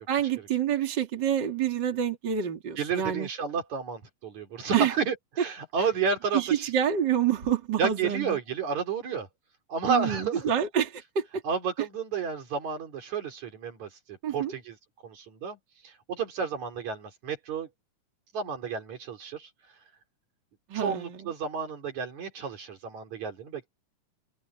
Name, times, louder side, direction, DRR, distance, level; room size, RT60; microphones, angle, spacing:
voice 1, 0.1-3.3 4.7-4.9 6.3-8.4 9.9-11.4 14.2-14.5 20.7-21.3, right 9 dB, 35° right, 3.0 m, -27 dB
voice 2, 2.8-6.7 7.8-9.3 9.7-10.5 11.4-14.8 15.0-15.6 15.8-17.7 18.3-19.5 20.7-23.6, right 5 dB, 65° right, 4.7 m, -31 dB
omnidirectional pair, 3.6 m